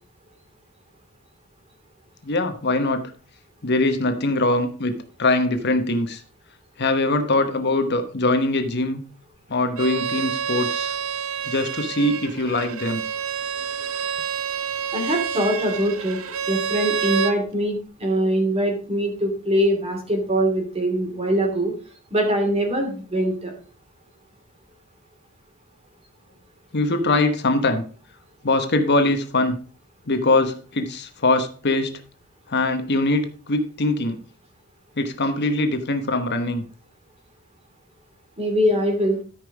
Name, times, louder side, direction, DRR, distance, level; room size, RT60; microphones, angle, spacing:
voice 1, 2.2-3.1 3.6-4.9 5.2-6.2 6.8-9.0 9.5-10.9 11.5-13.0 26.7-27.8 28.4-29.6 30.1-32.0 32.5-34.2 35.0-36.6, left 2 dB, 50° left, 7 dB, 1.1 m, -22 dB
Bowed string instrument, 9.8-17.4, right 7 dB, 70° right, 0.8 m, -28 dB
voice 2, 14.9-16.2 16.5-21.7 22.1-23.5 38.4-39.2, equal, 30° right, 3 dB, 2.7 m, -22 dB
13.0 x 5.4 x 4.8 m, 0.41 s
head